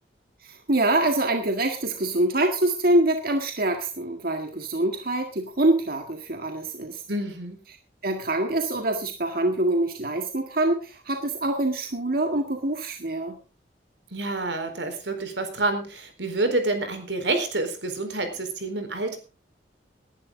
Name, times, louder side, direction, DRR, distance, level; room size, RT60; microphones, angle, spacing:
voice 1, 0.4-7.0 8.0-13.4, right 1 dB, 55° right, 5 dB, 1.8 m, -25 dB
voice 2, 7.1-7.6 14.1-19.2, right 2 dB, 85° right, 7 dB, 4.2 m, -28 dB
19.5 x 11.5 x 3.8 m, 0.34 s
head